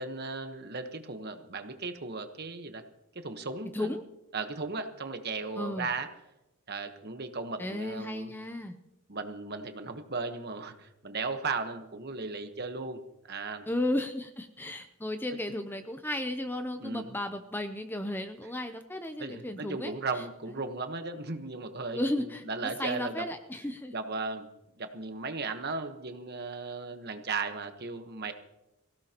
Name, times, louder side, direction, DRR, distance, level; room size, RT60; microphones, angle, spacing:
voice 1, 0.0-2.8 3.1-4.0 4.3-6.1 6.7-8.3 9.1-13.7 16.8-17.1 19.2-23.2 23.9-24.5 24.8-28.3, right 3 dB, 45° right, 7 dB, 1.2 m, -36 dB
voice 2, 5.6-5.9 7.6-8.7 13.7-20.2 21.9-22.4 22.8-23.9, left 1 dB, 10° left, 8 dB, 0.6 m, -34 dB
24.0 x 16.5 x 3.0 m, 0.92 s
head